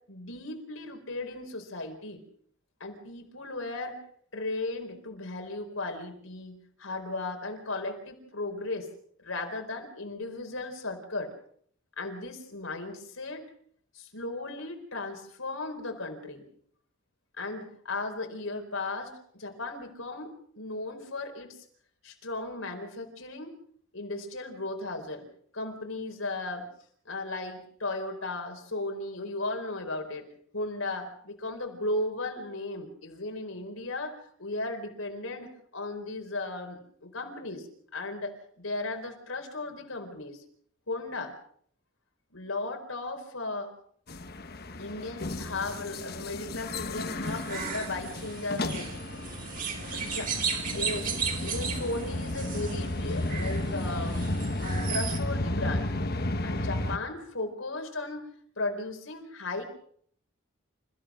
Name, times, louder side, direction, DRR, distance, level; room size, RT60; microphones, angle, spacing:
voice 1, 0.1-2.2 2.8-4.0 4.3-8.9 9.2-11.3 12.0-13.4 13.9-16.4 17.4-21.6 22.0-23.5 23.9-25.3 25.5-26.7 27.0-30.3 30.5-37.7 37.9-40.4 40.9-41.3 42.3-43.7 44.8-48.9 49.9-50.3 50.6-51.1 51.4-54.2 54.6-56.0 56.4-58.3 58.6-59.6, left 2 dB, 80° left, 3 dB, 4.5 m, -36 dB
sound 1, 44.1-57.0, left 1 dB, 50° left, 1.3 m, -33 dB
sound 2, 47.2-55.2, right 6 dB, 40° right, 3.3 m, -36 dB
29.0 x 15.5 x 6.3 m, 0.63 s
head